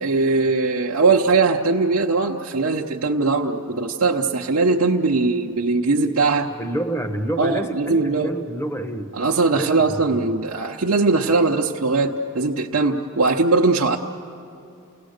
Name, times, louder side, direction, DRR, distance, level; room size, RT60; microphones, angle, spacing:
voice 1, 0.0-6.5 7.4-8.3 9.2-14.0, right 3 dB, 65° right, -3 dB, 0.8 m, -20 dB
voice 2, 6.6-9.2 9.5-10.3, right 1 dB, 10° left, 7 dB, 1.0 m, -28 dB
29.5 x 18.0 x 6.6 m, 2.7 s
head